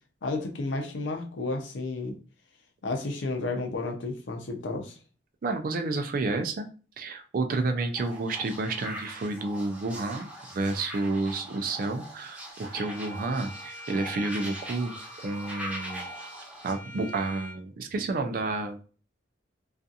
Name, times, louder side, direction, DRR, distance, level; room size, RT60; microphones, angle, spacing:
voice 1, 0.2-2.2 2.8-5.0, left 3 dB, 80° left, 3 dB, 0.6 m, -32 dB
voice 2, 5.4-6.7 7.0-15.0 15.2-16.1 16.6-18.9, right 3 dB, 50° right, 6 dB, 0.4 m, -30 dB
sound 1, 8.0-16.7, right 1 dB, 10° right, 0.6 m, -42 dB
Bowed string instrument, 12.7-17.6, left 1 dB, 60° left, 1.0 m, -44 dB
2.4 x 2.4 x 2.6 m, 0.37 s
head